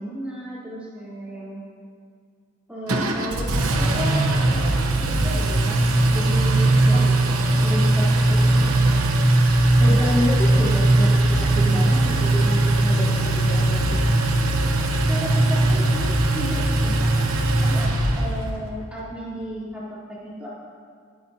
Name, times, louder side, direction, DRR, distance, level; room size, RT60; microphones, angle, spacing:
voice 1, 0.0-1.6 2.7-7.1 7.6-8.9 15.0-17.1 17.6-20.5, equal, 5° right, -9 dB, 3.3 m, -34 dB
Engine, 2.9-18.6, right 2 dB, 85° right, 1.0 m, -19 dB
voice 2, 9.8-14.0, left 1 dB, 20° left, -8 dB, 1.4 m, -29 dB
19.5 x 8.6 x 2.8 m, 2.1 s
head